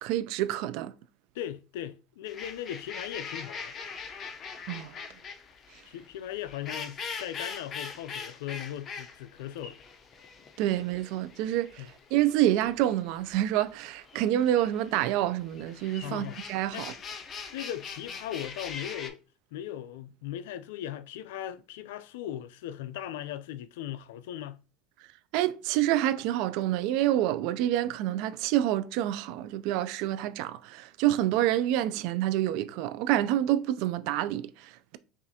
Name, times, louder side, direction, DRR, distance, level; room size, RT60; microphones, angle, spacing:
voice 1, 0.0-0.9 4.7-4.9 10.6-16.9 25.3-35.0, right 13 dB, 65° right, 0.3 m, -27 dB
voice 2, 1.3-3.7 5.9-9.8 11.8-11.9 16.0-16.4 16.7-16.9 17.5-19.2 19.5-24.6, left 11 dB, 80° left, 0.3 m, -38 dB
sound 1, 2.3-19.1, left 5 dB, 35° left, 0.6 m, -42 dB
5.5 x 2.5 x 2.7 m
supercardioid pair, 125°, 0 cm